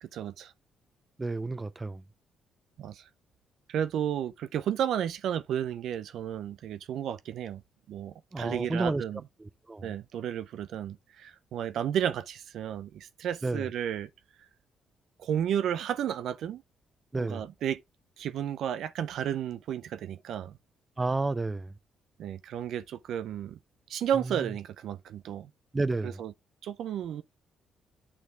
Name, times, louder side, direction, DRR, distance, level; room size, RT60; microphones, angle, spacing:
voice 1, 0.0-0.5 2.8-3.1 3.7-7.6 7.9-9.2 9.8-14.1 15.2-16.6 17.1-17.8 18.2-20.6 22.2-23.6 23.9-25.5 26.0-26.3 26.6-27.2, right 9 dB, 75° right, 0.5 m, -32 dB
voice 2, 1.2-2.0 8.3-9.0 9.4-9.9 13.4-13.7 17.1-17.4 21.0-21.7 24.3-24.4 25.7-26.2, right 3 dB, 20° right, 0.5 m, -31 dB
8.5 x 4.6 x 3.3 m
cardioid pair, 90°, 0 cm